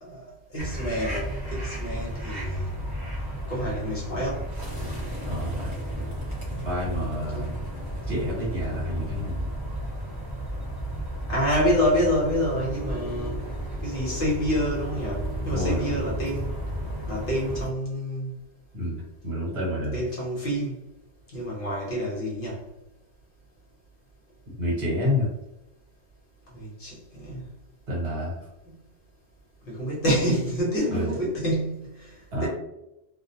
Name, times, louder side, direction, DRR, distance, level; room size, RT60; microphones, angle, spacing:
voice 1, 0.0-2.7 3.5-4.5 7.3-7.5 11.3-13.4 13.8-16.5 17.1-18.3 19.9-20.8 21.3-22.6 26.5-27.4 28.7-28.8 29.7-32.5, equal, 50° left, -5 dB, 0.9 m, -28 dB
sound 1, 0.6-17.7, equal, 20° right, 0.7 m, -33 dB
voice 2, 5.3-5.7 6.6-7.5 8.1-9.5 15.5-16.0 18.7-20.0 24.5-25.3 27.9-28.5 30.9-31.2 32.3-32.5, left 1 dB, 55° right, -5 dB, 1.2 m, -29 dB
Piano, 12.1-17.1, equal, 25° left, 1.1 m, -42 dB
2.4 x 2.0 x 2.7 m, 0.89 s
omnidirectional pair, 1.3 m